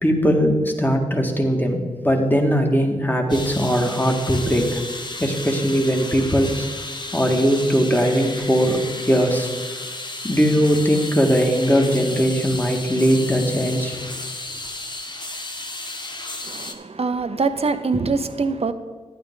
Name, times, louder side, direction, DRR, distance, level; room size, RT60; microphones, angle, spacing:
voice 1, 0.0-4.8 5.2-6.7 7.1-8.8 9.1-9.5 10.2-14.0, equal, 15° left, 2 dB, 2.0 m, -19 dB
sound 1, 3.3-16.7, left 2 dB, 30° left, 1.3 m, -33 dB
voice 2, 16.4-18.7, right 4 dB, 45° right, 11 dB, 0.8 m, -24 dB
11.5 x 8.8 x 3.8 m, 1.5 s
supercardioid pair, 40°, 14 cm